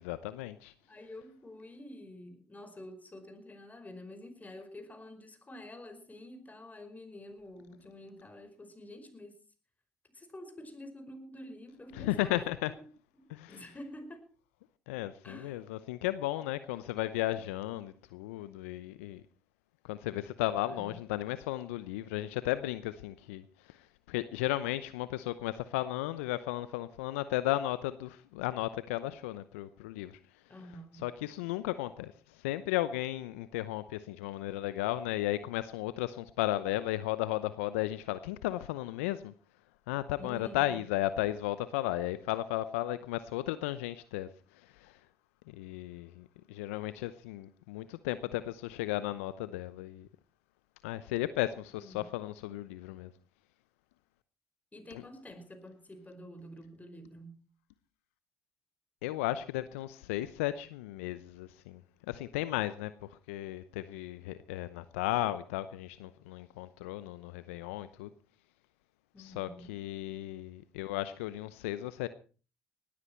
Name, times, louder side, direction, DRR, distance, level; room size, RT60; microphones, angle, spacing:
voice 1, 0.0-0.7 11.9-12.7 13.3-13.6 14.9-19.2 19.8-30.2 31.0-39.3 39.9-45.0 45.5-50.1 50.8-53.1 54.9-55.0 59.0-61.8 62.1-68.1 69.2-72.1, left 15 dB, 80° left, 0.7 m, -35 dB
voice 2, 0.9-9.4 10.1-12.9 13.1-14.3 15.2-15.7 20.7-20.9 30.5-31.1 40.2-40.8 51.7-52.1 54.7-57.4 69.1-69.8, left 1 dB, 20° left, 5.1 m, -48 dB
19.0 x 14.0 x 4.5 m
hypercardioid pair, 55°, 7 cm